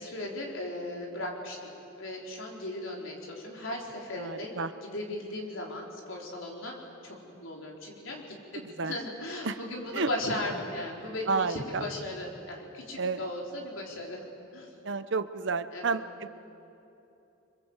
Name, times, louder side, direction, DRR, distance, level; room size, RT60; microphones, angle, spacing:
voice 1, 0.0-4.5 4.8-6.7 7.0-14.3 14.5-14.7 15.7-16.0, left 1 dB, 75° left, -1 dB, 4.6 m, -37 dB
voice 2, 4.2-4.7 8.6-8.9 9.4-9.6 9.9-10.1 11.3-11.8 13.0-13.2 14.8-16.3, right 4 dB, 60° right, 12 dB, 0.9 m, -31 dB
27.5 x 24.5 x 8.2 m, 2.9 s
head